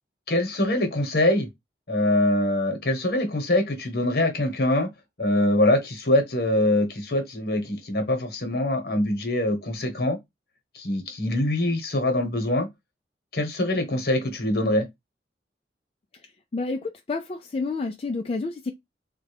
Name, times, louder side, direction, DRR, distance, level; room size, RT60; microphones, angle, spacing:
voice 1, 0.3-1.5 1.9-4.9 5.2-10.2 10.7-12.7 13.3-14.9, left 1 dB, 60° left, 1.1 m, -23 dB
voice 2, 16.5-18.7, left 3 dB, 35° left, 0.4 m, -29 dB
3.6 x 2.2 x 3.3 m
head